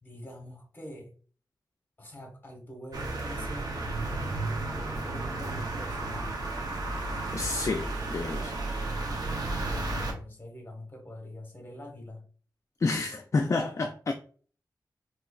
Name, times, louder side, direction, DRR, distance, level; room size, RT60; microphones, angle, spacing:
voice 1, 0.0-1.1 2.0-6.4 9.3-12.3, left 1 dB, 25° left, 1.3 m, -45 dB
sound 1, 2.9-10.1, right 2 dB, 60° right, 0.9 m, -33 dB
voice 2, 7.3-8.6 12.8-14.1, left 3 dB, 45° left, 0.4 m, -29 dB
4.3 x 2.9 x 2.4 m
wide cardioid pair, 75°, 7 cm